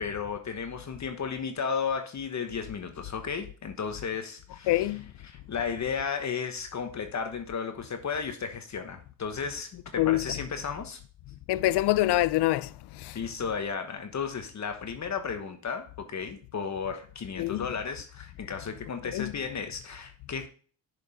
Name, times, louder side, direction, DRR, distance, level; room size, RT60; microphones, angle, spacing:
voice 1, 0.0-5.0 5.2-11.0 13.1-20.5, left 6 dB, 35° left, 1.2 m, -34 dB
voice 2, 4.7-5.0 10.0-10.2 11.5-12.7 13.0-13.2 17.4-17.6 19.1-19.3, left 16 dB, 60° left, 0.6 m, -25 dB
7.0 x 5.1 x 5.0 m
cardioid pair, 100°, 47 cm